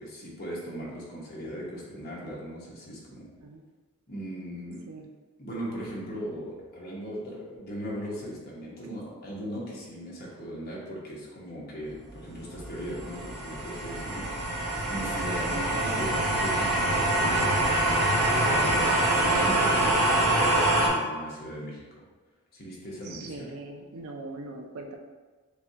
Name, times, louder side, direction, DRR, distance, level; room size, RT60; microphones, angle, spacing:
voice 1, 0.0-3.3 4.1-4.8 5.4-21.8 22.5-23.5, equal, 40° left, -5 dB, 1.1 m, -38 dB
sound 1, 12.1-20.9, right 1 dB, 90° right, 1.3 m, -25 dB
voice 2, 23.1-25.0, right 2 dB, 75° right, 2 dB, 0.5 m, -41 dB
6.6 x 2.3 x 2.8 m, 1.3 s
head